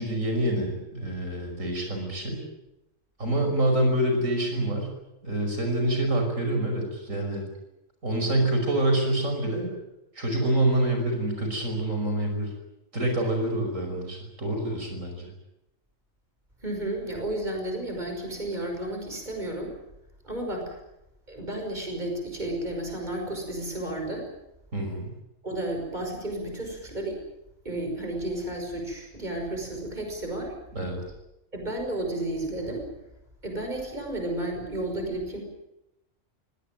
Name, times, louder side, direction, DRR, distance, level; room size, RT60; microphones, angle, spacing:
voice 1, 0.0-2.4 3.2-4.9 5.2-7.4 8.0-9.7 10.1-12.5 12.9-15.3 24.7-25.1 30.7-31.0, right 1 dB, 85° right, 3 dB, 6.1 m, -26 dB
voice 2, 16.6-19.7 20.2-20.8 21.3-24.3 25.4-27.2 27.6-30.5 31.5-32.8 33.4-35.4, right 1 dB, 35° right, 3 dB, 5.9 m, -32 dB
24.0 x 18.0 x 9.1 m, 0.89 s
omnidirectional pair, 1.3 m